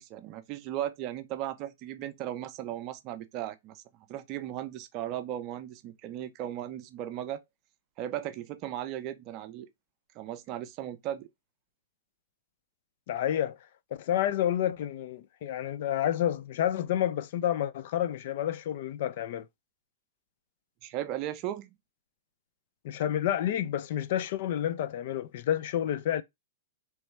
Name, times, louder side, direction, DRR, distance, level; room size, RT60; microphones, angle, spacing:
voice 1, 0.0-3.8 4.1-7.4 8.0-9.7 10.1-11.3 20.8-21.7, right 12 dB, 40° right, 0.5 m, -36 dB
voice 2, 13.1-13.6 14.0-19.5 22.8-26.2, left 11 dB, 55° left, 0.4 m, -29 dB
3.1 x 3.1 x 3.2 m
hypercardioid pair, 110°, 0 cm